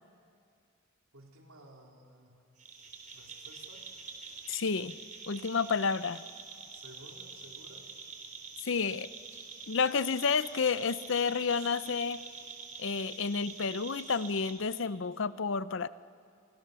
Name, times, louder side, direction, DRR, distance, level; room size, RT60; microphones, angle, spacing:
voice 1, 1.1-2.4 3.1-3.9 6.7-7.9 11.5-11.7, right 1 dB, 85° right, 1 dB, 4.0 m, -55 dB
sound 1, 2.6-14.5, right 5 dB, 35° right, 4.1 m, -46 dB
voice 2, 4.5-5.0 5.3-6.2 8.6-9.1 9.7-12.2 12.8-15.9, left 5 dB, 60° left, 16 dB, 0.6 m, -30 dB
29.0 x 25.5 x 6.9 m, 2.4 s
head